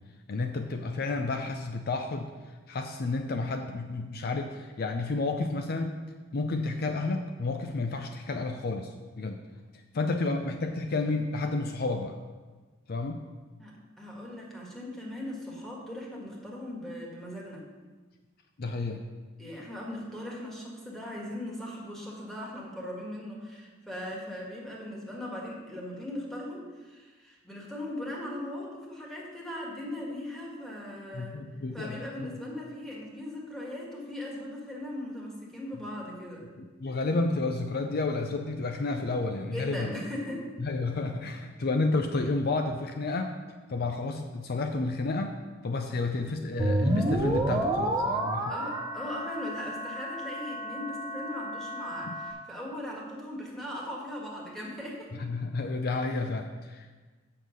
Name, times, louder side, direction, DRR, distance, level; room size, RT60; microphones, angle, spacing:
voice 1, 0.3-2.3 2.7-6.0 6.3-9.4 9.9-12.2 12.9-13.3 18.6-19.0 31.1-32.3 36.6-40.0 40.6-43.3 43.7-45.3 45.6-48.5 52.1-52.2 55.1-56.9, left 3 dB, 50° left, 5 dB, 0.5 m, -31 dB
voice 2, 13.6-17.6 19.4-31.3 31.7-36.5 39.5-40.5 48.4-55.1, left 1 dB, ahead, -4 dB, 1.8 m, -39 dB
sound 1, 46.6-52.3, right 1 dB, 20° right, 0.8 m, -30 dB
7.7 x 6.4 x 5.3 m, 1.3 s
head